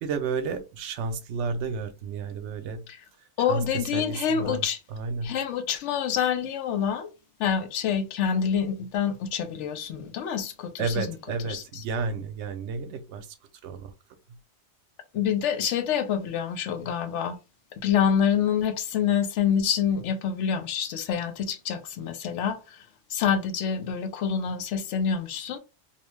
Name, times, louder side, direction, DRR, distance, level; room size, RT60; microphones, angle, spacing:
voice 1, 0.0-2.8 3.5-4.6 4.9-5.4 10.8-13.3 13.6-13.9, right 4 dB, 75° right, 0.8 m, -31 dB
voice 2, 3.4-4.8 5.2-7.1 7.4-11.1 11.4-11.8 15.1-17.4 17.8-22.8 23.1-25.6, left 8 dB, 85° left, 0.9 m, -27 dB
2.8 x 2.1 x 3.0 m
omnidirectional pair, 1.2 m